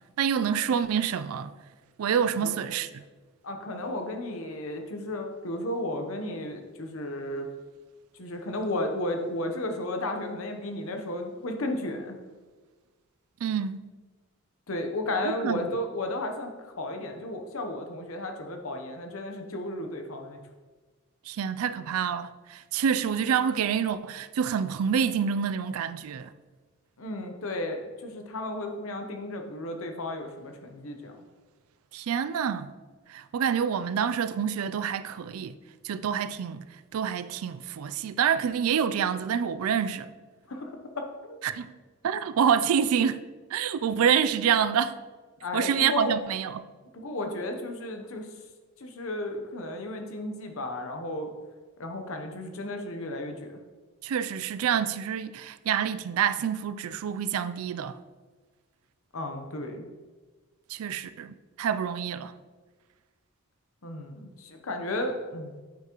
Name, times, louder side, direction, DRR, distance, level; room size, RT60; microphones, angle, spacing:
voice 1, 0.2-1.5 2.0-3.0 13.4-13.8 15.2-15.6 21.3-26.3 31.9-32.7 33.1-35.5 35.8-36.7 36.9-40.1 41.4-41.7 42.0-43.2 43.5-44.9 45.5-46.6 54.0-58.0 60.7-62.3, right 7 dB, 70° right, 0.3 m, -27 dB
voice 2, 3.4-7.5 8.2-12.2 14.7-20.4 27.0-31.1 40.5-41.4 45.4-46.1 46.9-48.3 48.8-51.3 51.8-53.5 59.1-59.9 63.8-65.6, left 1 dB, 65° left, 0.9 m, -34 dB
8.6 x 5.9 x 3.0 m
head